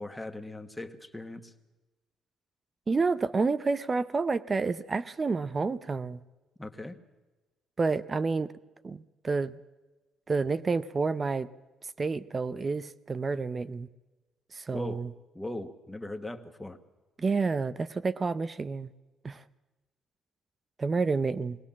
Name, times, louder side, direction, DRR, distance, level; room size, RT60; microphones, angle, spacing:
voice 1, 0.0-1.5 6.6-7.0 14.7-15.0 15.3-16.8, left 1 dB, 5° left, 7 dB, 1.3 m, -39 dB
voice 2, 2.9-6.2 7.8-8.5 8.8-9.6 10.3-11.5 12.0-13.9 14.5-15.1 17.2-18.9 19.2-19.4 20.8-21.6, right 4 dB, 25° right, 14 dB, 0.6 m, -29 dB
21.5 x 18.0 x 7.3 m, 1.1 s
cardioid pair, 135°, 0 cm